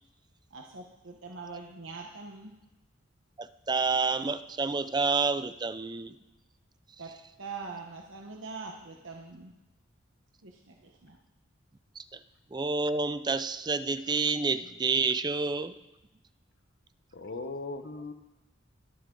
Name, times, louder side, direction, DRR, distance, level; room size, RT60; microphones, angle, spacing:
voice 1, 0.5-2.5 7.0-7.1 7.4-9.5 10.4-11.2, right 4 dB, 70° right, 1 dB, 1.1 m, -43 dB
voice 2, 3.4-6.2 12.0-12.2 12.5-15.8, right 4 dB, 20° right, 12 dB, 0.5 m, -29 dB
voice 3, 17.1-18.1, left 3 dB, 60° left, 9 dB, 1.0 m, -38 dB
23.0 x 8.1 x 3.9 m, 0.99 s
head